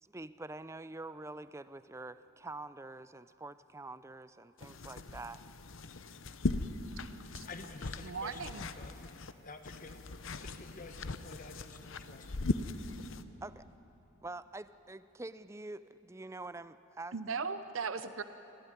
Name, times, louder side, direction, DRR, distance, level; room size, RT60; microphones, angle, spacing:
voice 1, 0.0-5.4 13.4-13.7 14.2-17.5, right 2 dB, 15° right, 0.4 m, -46 dB
sound 1, 4.6-9.3 9.6-13.2, left 2 dB, 65° left, 0.9 m, -39 dB
voice 2, 7.5-9.0 9.4-10.0 10.4-12.4, left 3 dB, 40° left, 1.2 m, -50 dB
voice 3, 8.0-8.6 17.1-18.2, right 5 dB, 70° right, 0.8 m, -37 dB
25.5 x 16.0 x 9.7 m
head